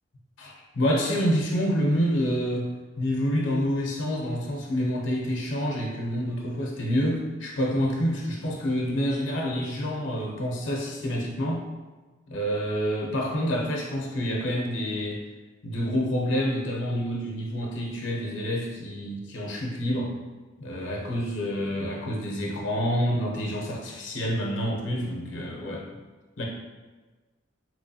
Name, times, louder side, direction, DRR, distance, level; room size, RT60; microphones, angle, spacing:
voice 1, 0.4-11.6 12.3-15.2 15.6-20.2 20.6-25.9 26.4-26.5, equal, 75° left, -1 dB, 0.6 m, -28 dB
3.6 x 3.1 x 2.7 m, 1.3 s
head